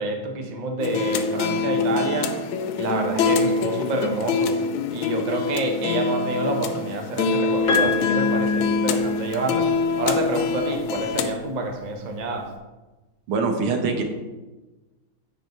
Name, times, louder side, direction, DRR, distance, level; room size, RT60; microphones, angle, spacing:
voice 1, 0.0-2.3 2.8-4.6 4.9-9.7 10.0-12.5, right 2 dB, 40° right, 2 dB, 0.6 m, -28 dB
sound 1, 0.8-11.3, left 4 dB, 75° left, 1.4 m, -24 dB
Piano, 7.7-9.7 11.0-11.1, left 5 dB, 45° left, 1.2 m, -27 dB
voice 2, 13.3-14.0, right 4 dB, 80° right, 4 dB, 1.9 m, -23 dB
9.2 x 5.2 x 4.5 m, 1.1 s
omnidirectional pair, 2.3 m